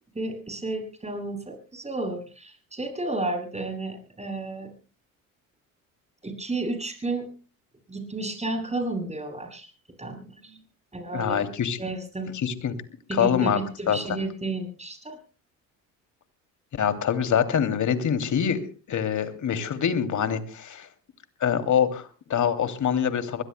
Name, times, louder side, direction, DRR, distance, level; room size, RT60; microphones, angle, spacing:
voice 1, 0.1-4.7 6.2-7.3 7.9-9.7 10.0-10.6 10.9-11.4 11.8-12.3 13.1-15.2, right 2 dB, 15° right, 3 dB, 7.9 m, -32 dB
voice 2, 11.1-11.8 12.3-12.7 13.1-13.6 13.9-14.0 16.7-18.6 18.9-20.9 21.4-23.4, left 8 dB, 45° left, 8 dB, 2.9 m, -25 dB
24.5 x 21.0 x 2.2 m, 0.35 s
hypercardioid pair, 70°, 40 cm